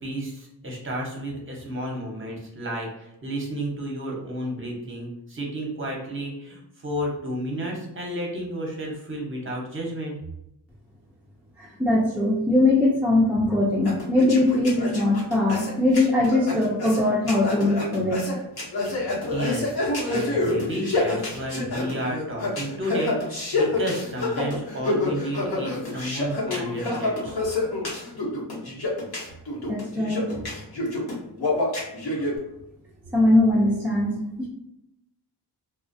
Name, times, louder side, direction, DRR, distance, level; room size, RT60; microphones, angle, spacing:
voice 1, 0.0-10.2 19.3-19.8 20.0-27.4, right 1 dB, 30° right, -2 dB, 0.7 m, -32 dB
voice 2, 11.6-18.3 29.7-30.5 33.1-34.5, left 2 dB, 5° right, -5 dB, 0.3 m, -21 dB
sound 1, 13.9-32.3, left 2 dB, 60° left, 0.8 m, -27 dB
2.4 x 2.0 x 2.5 m, 0.84 s
wide cardioid pair, 85°, 42 cm